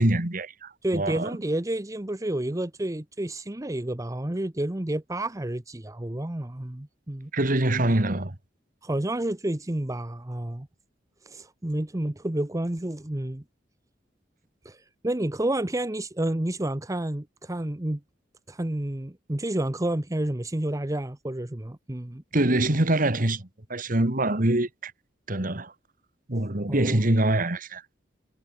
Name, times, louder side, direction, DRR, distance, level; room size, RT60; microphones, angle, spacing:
voice 1, 0.0-1.4 7.3-8.4 22.3-24.9 25.3-25.7 26.3-27.8, right 1 dB, 45° right, 2.2 m, -24 dB
voice 2, 0.8-7.3 8.8-10.7 11.2-13.4 14.6-18.0 18.5-22.2 26.7-27.0, right 1 dB, 20° right, 0.9 m, -30 dB
head